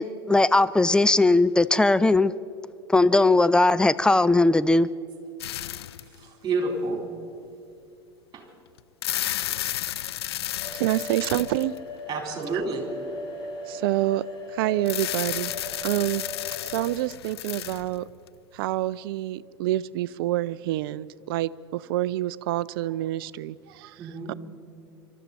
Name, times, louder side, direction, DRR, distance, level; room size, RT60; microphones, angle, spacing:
voice 1, 0.0-2.3 2.9-4.9, left 2 dB, 5° left, 15 dB, 0.4 m, -19 dB
sound 1, 5.4-6.2 6.9-7.0 8.8-12.0 14.9-18.3, left 12 dB, 75° left, 0.4 m, -32 dB
voice 2, 6.2-7.1 8.3-8.4 12.1-12.9 24.0-24.4, right 3 dB, 30° right, 2 dB, 4.0 m, -29 dB
sound 2, 10.6-16.7, left 2 dB, 35° left, 4.3 m, -39 dB
voice 3, 10.7-11.7 13.7-15.5 15.8-16.3 16.6-18.1 18.5-24.3, right 15 dB, 60° right, 17 dB, 0.4 m, -27 dB
25.0 x 13.0 x 4.2 m, 2.5 s
figure-of-eight pair, 80°, 13 cm